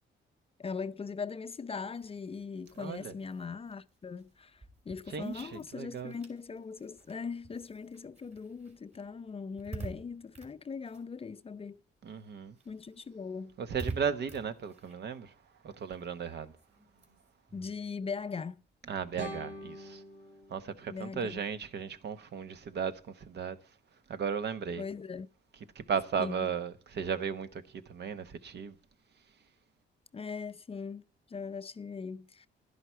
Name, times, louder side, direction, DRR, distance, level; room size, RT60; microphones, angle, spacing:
voice 1, 0.6-11.8 12.7-13.5 17.5-18.6 20.9-21.4 24.8-25.3 26.2-26.5 30.1-32.5, left 5 dB, 30° left, 0.6 m, -40 dB
sound 1, 1.9-11.8 12.1-19.0, right 3 dB, 35° right, 3.3 m, -49 dB
voice 2, 2.8-3.1 5.1-6.1 12.0-12.5 13.6-15.3 15.6-16.5 18.9-20.0 20.5-22.9 23.3-23.6 24.1-24.8 25.8-27.6 27.9-28.7, right 6 dB, 60° right, 1.1 m, -35 dB
sound 2, 19.2-22.2, equal, 85° right, 4.6 m, -46 dB
11.5 x 11.0 x 4.6 m
cardioid pair, 90°, 20 cm